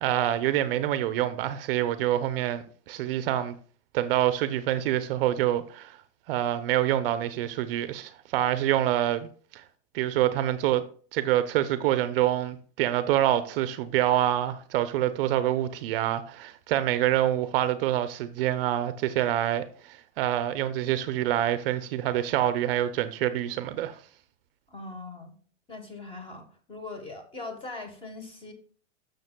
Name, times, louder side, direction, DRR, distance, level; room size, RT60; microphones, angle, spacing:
voice 1, 0.0-3.6 3.9-6.0 6.3-9.3 9.5-9.6 9.9-10.8 11.1-24.0, right 12 dB, 50° right, 0.6 m, -26 dB
voice 2, 24.7-25.4 25.7-28.5, left 3 dB, 15° left, 1.2 m, -41 dB
12.0 x 6.6 x 2.2 m
supercardioid pair, 145°, 37 cm